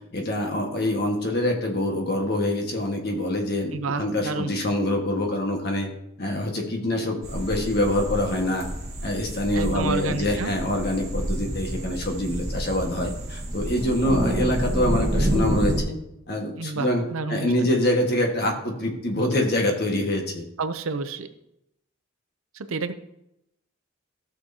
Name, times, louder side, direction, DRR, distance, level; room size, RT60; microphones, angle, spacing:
voice 1, 0.1-5.9 6.2-8.7 9.0-16.0 16.3-17.0 17.3-20.5, left 1 dB, 45° left, 1 dB, 1.6 m, -25 dB
voice 2, 3.7-4.5 9.5-10.5 16.6-17.7 20.6-21.3 22.5-22.9, right 4 dB, 75° right, 9 dB, 0.6 m, -30 dB
sound 1, 7.2-15.8, right 1 dB, 15° right, 1.4 m, -28 dB
15.0 x 6.4 x 2.8 m, 0.83 s
head